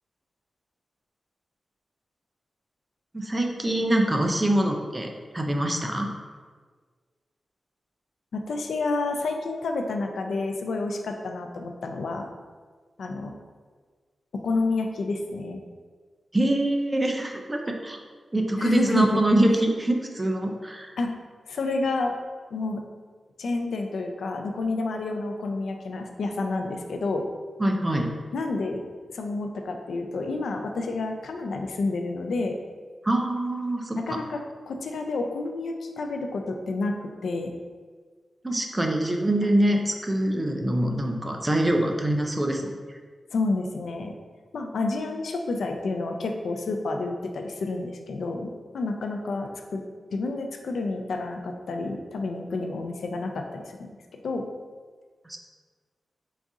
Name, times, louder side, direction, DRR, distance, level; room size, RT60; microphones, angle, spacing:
voice 1, 3.1-5.1 5.3-6.1 16.3-18.0 18.3-20.9 27.6-28.1 33.0-34.2 38.4-43.0 55.3-55.4, right 1 dB, 15° right, 2 dB, 0.3 m, -24 dB
voice 2, 8.3-12.3 13.0-13.4 14.3-15.6 18.6-19.2 21.0-21.2 21.5-22.1 22.5-22.8 23.4-27.2 28.3-28.8 29.1-32.6 34.0-37.5 43.3-44.1 44.5-49.8 50.1-54.0 54.2-54.4, left 3 dB, 80° left, 4 dB, 0.3 m, -29 dB
4.0 x 2.4 x 3.6 m, 1.5 s
wide cardioid pair, 160°, 0 cm